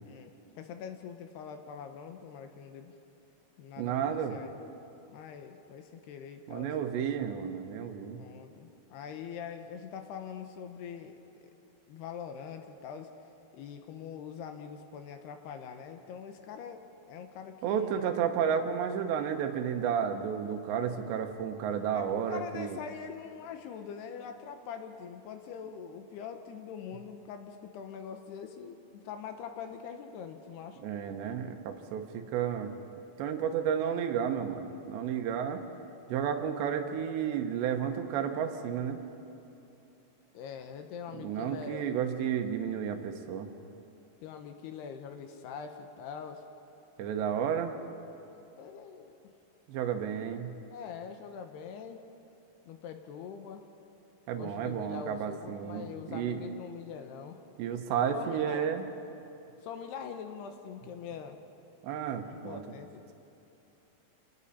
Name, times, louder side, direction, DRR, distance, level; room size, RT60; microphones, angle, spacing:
voice 1, 0.0-2.9 3.6-4.7 5.1-6.8 8.2-11.5 11.9-13.1 13.5-18.0 21.9-30.8 40.3-41.9 44.2-46.5 48.3-49.2 50.7-52.0 52.7-53.6 54.4-57.4 58.1-58.7 59.6-61.4 62.3-63.1, left 7 dB, 75° left, 6 dB, 2.8 m, -43 dB
voice 2, 3.8-4.4 6.5-8.2 17.6-22.8 30.8-32.7 33.2-35.6 36.1-39.0 41.1-43.5 47.0-47.7 49.7-50.5 54.3-56.4 57.6-58.8 61.8-62.6, right 8 dB, 80° right, 6 dB, 3.2 m, -32 dB
27.0 x 19.0 x 5.6 m, 3.0 s
omnidirectional pair, 5.2 m